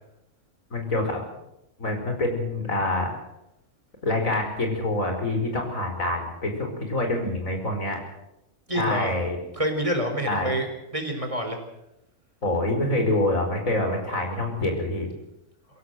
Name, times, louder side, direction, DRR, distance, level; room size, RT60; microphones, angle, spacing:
voice 1, 0.7-1.2 1.8-3.2 4.0-8.0 8.7-9.4 10.3-10.5 12.4-15.1, left 2 dB, 75° left, 3 dB, 5.4 m, -26 dB
voice 2, 8.7-9.1 9.5-11.6, equal, 25° right, 5 dB, 4.2 m, -27 dB
22.5 x 16.5 x 7.9 m, 0.86 s
omnidirectional pair, 1.4 m